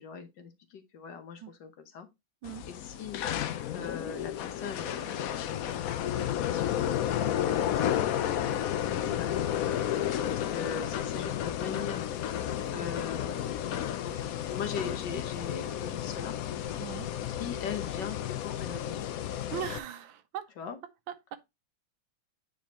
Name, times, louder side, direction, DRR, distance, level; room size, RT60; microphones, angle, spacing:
voice 1, 0.0-2.1 2.7-3.2 3.7-8.1 8.8-9.6 10.3-12.1 12.7-16.3 17.3-19.1 20.6-20.8, left 6 dB, 65° left, 1.6 m, -41 dB
sound 1, 2.4-19.8, left 10 dB, 80° left, 0.7 m, -32 dB
voice 2, 19.5-20.5 21.1-21.4, right 10 dB, 75° right, 1.5 m, -39 dB
9.1 x 4.3 x 3.0 m
omnidirectional pair, 2.2 m